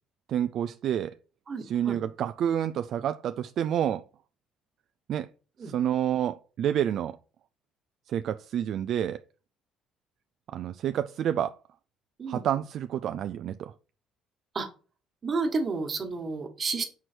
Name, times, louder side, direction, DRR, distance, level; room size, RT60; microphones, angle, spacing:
voice 1, 0.3-1.2 1.6-4.0 5.1-5.3 5.6-7.2 8.1-9.2 10.5-11.6 12.3-13.7, right 10 dB, 60° right, 0.3 m, -29 dB
voice 2, 1.5-2.0 5.6-5.7 12.2-12.5 14.5-14.7 15.2-16.8, right 4 dB, 35° right, 1.5 m, -31 dB
6.1 x 4.7 x 4.4 m
cardioid pair, 100°, 0 cm